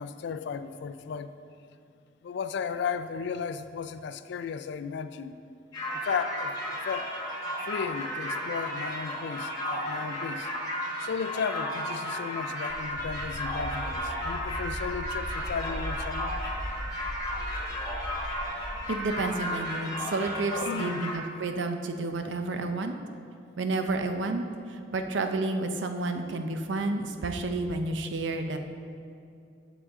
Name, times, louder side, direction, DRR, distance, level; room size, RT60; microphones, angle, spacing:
voice 1, 0.0-1.4 2.2-5.4 5.9-7.1 7.6-10.5 11.0-16.4 20.5-21.0, left 6 dB, 65° left, 11 dB, 0.3 m, -35 dB
sound 1, 5.7-21.1, equal, 20° left, 1.4 m, -34 dB
sound 2, 12.7-18.8, equal, 15° right, 0.5 m, -38 dB
voice 2, 18.9-23.0 23.6-24.4 24.9-28.6, right 3 dB, 75° right, 6 dB, 0.5 m, -30 dB
7.2 x 6.8 x 3.7 m, 2.5 s
head